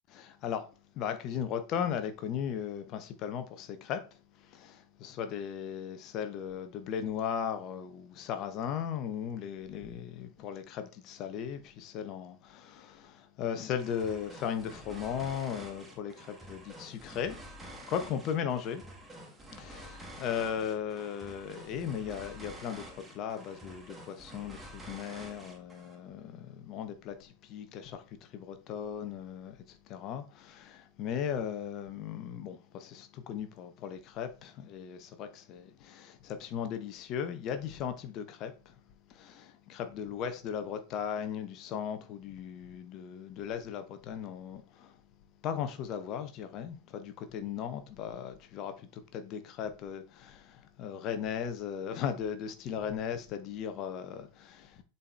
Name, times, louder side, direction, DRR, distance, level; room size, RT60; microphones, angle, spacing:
voice 1, 0.1-0.7 0.9-18.8 19.5-38.8 39.1-45.0 45.4-54.8, left 8 dB, 35° left, 1.0 m, -37 dB
sound 1, 13.8-26.0, right 1 dB, 10° right, 1.5 m, -49 dB
7.3 x 4.3 x 3.4 m
figure-of-eight pair, 90°, 0 cm